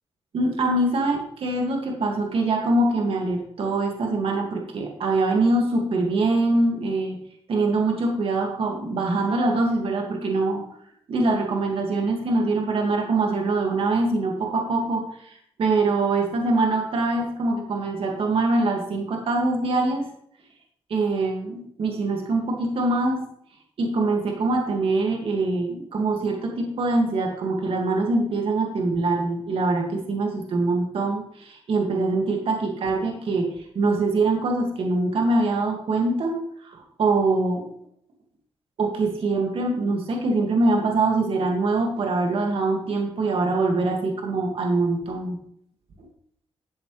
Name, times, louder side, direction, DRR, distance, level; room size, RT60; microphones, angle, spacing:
voice 1, 0.3-7.2 7.5-10.6 11.1-20.1 20.9-23.3 23.8-37.7 38.8-45.4, right 2 dB, 65° right, 1 dB, 2.2 m, -24 dB
12.0 x 7.8 x 3.4 m, 0.67 s
cardioid pair, 90°, 10 cm